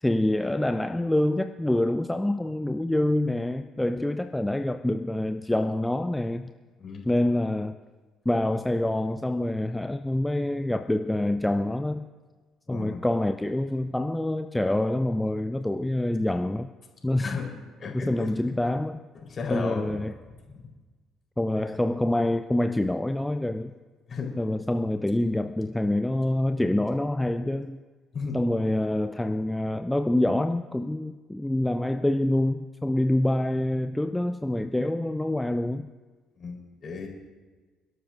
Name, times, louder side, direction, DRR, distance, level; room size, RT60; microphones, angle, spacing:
voice 1, 0.0-6.5 7.0-7.8 8.3-12.1 12.7-16.7 17.0-17.3 17.9-19.0 19.5-20.1 21.4-23.7 24.4-27.8 28.3-35.9, left 1 dB, 10° left, 9 dB, 0.5 m, -26 dB
voice 2, 12.7-13.0 17.2-17.5 17.8-18.3 19.2-19.9 24.1-24.3 28.1-28.4 36.4-37.1, left 5 dB, 40° left, 0 dB, 4.0 m, -34 dB
29.0 x 12.5 x 2.6 m, 1.4 s
figure-of-eight pair, 50°, 0 cm